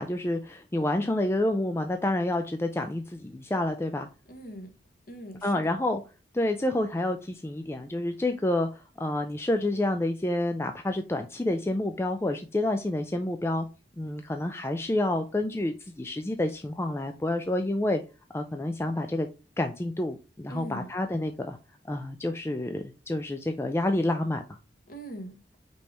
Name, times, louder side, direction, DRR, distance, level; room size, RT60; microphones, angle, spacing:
voice 1, 0.0-4.1 5.4-6.0 6.3-13.7 14.0-18.0 18.3-19.3 19.6-21.6 21.8-24.6, left 1 dB, 15° left, 0.4 m, -28 dB
voice 2, 4.3-4.7 5.1-5.8 20.5-20.9 24.9-25.4, right 1 dB, 55° left, 1.4 m, -41 dB
5.3 x 3.3 x 2.9 m
head